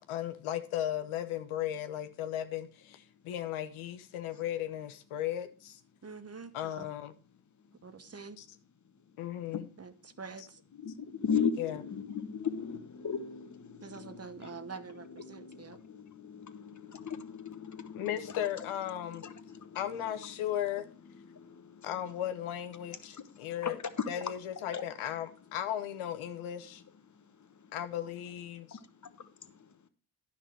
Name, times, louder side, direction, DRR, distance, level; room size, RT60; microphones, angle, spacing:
voice 1, 0.1-5.8 6.5-7.1 9.2-9.6 11.6-11.7 17.9-19.2 19.7-20.8 21.8-23.0 23.4-23.7 24.1-24.2 24.6-26.8 27.7-28.6, left 11 dB, 80° left, 0.9 m, -36 dB
voice 2, 6.0-6.9 7.8-8.4 9.8-10.6 13.8-15.8, right 5 dB, 30° right, 0.9 m, -46 dB
voice 3, 7.5-8.2 8.8-9.8 10.7-22.3 22.7-25.6 26.2-28.1 28.7-29.8, left 6 dB, 35° left, 1.1 m, -40 dB
10.5 x 5.9 x 4.5 m
supercardioid pair, 50°, 48 cm